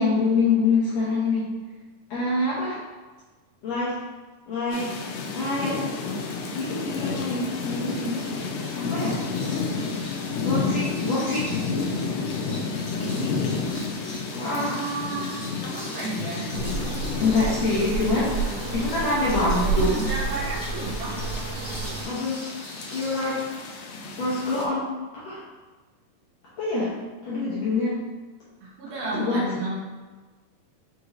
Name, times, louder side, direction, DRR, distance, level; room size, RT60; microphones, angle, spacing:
voice 1, 0.0-1.5 2.1-2.8 3.6-3.9 4.5-5.0 5.3-5.8 6.5-8.2 8.7-9.2 10.3-11.6 14.3-14.7 17.2-18.4 18.7-20.0 22.0-22.5 22.9-23.5 24.2-25.4 26.6-27.0 27.2-28.0 29.0-29.4, left 3 dB, 70° left, -8 dB, 1.7 m, -25 dB
sound 1, 4.7-24.7, left 4 dB, 85° left, 2.2 m, -31 dB
sound 2, 7.6-23.4, left 1 dB, 50° left, 0.8 m, -43 dB
voice 2, 12.9-13.4 14.5-16.5 19.3-21.2 28.6-29.8, right 2 dB, 75° right, -5 dB, 2.3 m, -33 dB
sound 3, 16.5-22.1, right 4 dB, 90° right, 1.7 m, -30 dB
6.2 x 3.0 x 2.5 m, 1.3 s
omnidirectional pair, 3.9 m